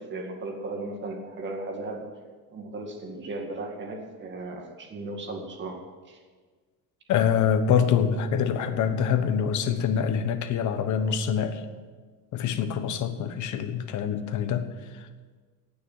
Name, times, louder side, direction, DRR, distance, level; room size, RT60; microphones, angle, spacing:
voice 1, 0.0-2.1 2.5-6.2, right 2 dB, 30° right, 2 dB, 2.1 m, -36 dB
voice 2, 7.1-11.6 12.3-15.1, left 7 dB, 50° left, 8 dB, 1.2 m, -25 dB
17.0 x 6.7 x 8.8 m, 1.5 s
cardioid pair, 170°, 37 cm